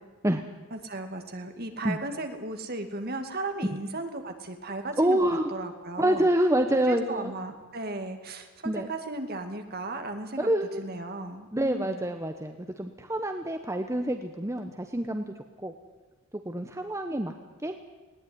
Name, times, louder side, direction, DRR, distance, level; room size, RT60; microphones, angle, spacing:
voice 1, 0.7-6.3 6.9-10.5 10.8-12.1, right 2 dB, 45° right, 6 dB, 2.4 m, -36 dB
voice 2, 5.0-5.4 6.0-7.3 8.6-8.9 10.4-10.8 11.5-15.3 15.6-15.7 16.4-17.3 17.6-17.7, right 1 dB, 15° right, 6 dB, 1.0 m, -27 dB
20.0 x 18.0 x 9.7 m, 1.3 s
head